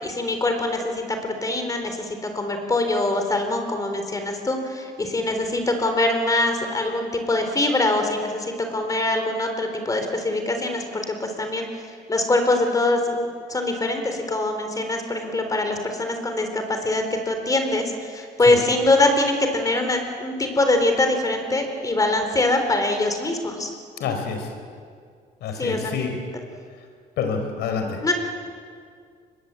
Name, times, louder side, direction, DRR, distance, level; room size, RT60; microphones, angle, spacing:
voice 1, 0.0-11.8 12.1-23.7 25.6-26.0 28.0-28.1, left 2 dB, 20° left, 5 dB, 3.8 m, -23 dB
voice 2, 24.0-24.5 25.4-26.1 27.2-28.0, left 6 dB, 75° left, 5 dB, 4.9 m, -27 dB
24.0 x 21.5 x 8.7 m, 2.1 s
cardioid pair, 110°, 17 cm